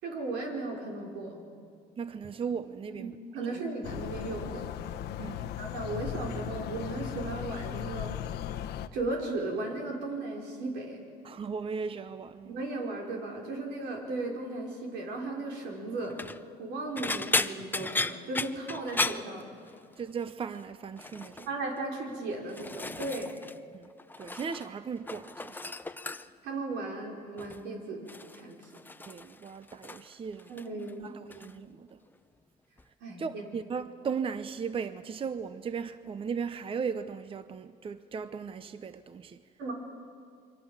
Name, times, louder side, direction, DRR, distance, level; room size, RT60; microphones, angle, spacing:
voice 1, 0.0-1.5 2.9-4.7 5.6-8.2 8.9-11.0 12.4-16.2 16.6-19.5 21.5-23.4 26.4-28.7 30.5-31.2 33.0-33.5 39.6-39.7, right 2 dB, 85° right, 5.4 m, -36 dB
voice 2, 2.0-3.1 3.5-3.6 5.2-5.5 11.2-12.6 20.0-21.5 23.7-23.9 24.2-25.6 29.1-30.6 31.0-32.0 33.2-39.4, right 6 dB, 30° right, 0.7 m, -37 dB
sound 1, 3.8-8.9, left 10 dB, 75° left, 1.0 m, -37 dB
sound 2, 16.0-16.4 17.0-20.0 20.3-20.6 21.0-21.5 22.2-23.6 23.8-24.7 25.0-26.5 27.4-27.7 28.1-30.1 30.4-30.9 31.3-31.5 32.8-32.9, left 3 dB, 10° left, 0.7 m, -35 dB
27.0 x 24.0 x 7.3 m
cardioid pair, 110°, 17 cm